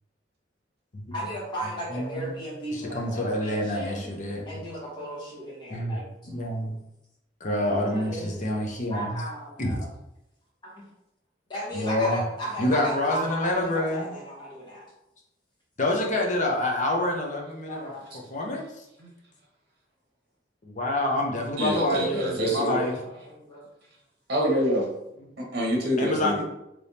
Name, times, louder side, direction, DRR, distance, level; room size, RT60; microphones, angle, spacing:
voice 1, 1.1-4.1 4.5-6.0 7.7-8.4 8.9-9.9 10.6-10.8 11.5-14.9 17.7-18.1 22.7-23.6, equal, 25° left, -6 dB, 1.2 m, -35 dB
voice 2, 1.9-2.3 2.7-4.6 5.7-6.7 7.4-9.2 9.6-9.8 11.7-12.2 12.6-14.1 15.8-17.9 18.3-18.8 20.6-23.0 25.2-25.3 26.0-26.4, left 1 dB, 40° left, 0 dB, 0.7 m, -27 dB
voice 3, 21.6-22.8 24.3-24.9 25.5-26.4, equal, 55° right, -2 dB, 0.9 m, -25 dB
3.3 x 3.0 x 2.7 m, 0.87 s
head